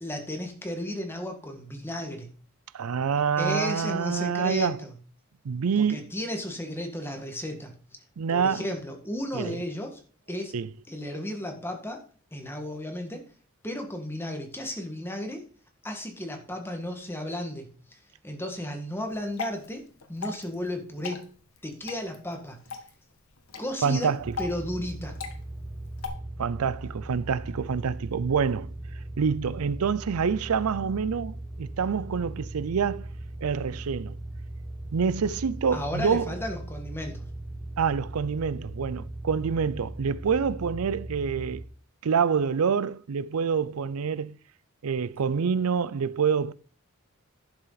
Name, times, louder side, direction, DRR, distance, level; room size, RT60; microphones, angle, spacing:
voice 1, 0.0-2.3 3.4-4.9 5.8-7.7 8.3-10.0 10.3-10.5 10.9-12.0 12.3-13.2 13.6-15.4 15.8-18.0 18.2-19.8 20.1-21.2 21.6-22.6 23.6-24.1 24.4-25.2 35.7-37.2, left 1 dB, 10° left, 1.7 m, -34 dB
voice 2, 2.7-4.8 5.4-6.1 8.2-8.7 9.3-9.6 10.5-10.7 23.8-24.3 26.4-28.7 29.2-33.1 33.4-34.2 34.9-36.3 37.8-41.6 42.0-44.4 44.8-46.5, right 6 dB, 85° right, 0.5 m, -27 dB
Water / Drip, 19.1-26.1, left 5 dB, 75° left, 1.5 m, -40 dB
sound 1, 24.2-41.7, right 1 dB, 5° right, 1.2 m, -39 dB
11.0 x 6.8 x 4.0 m
head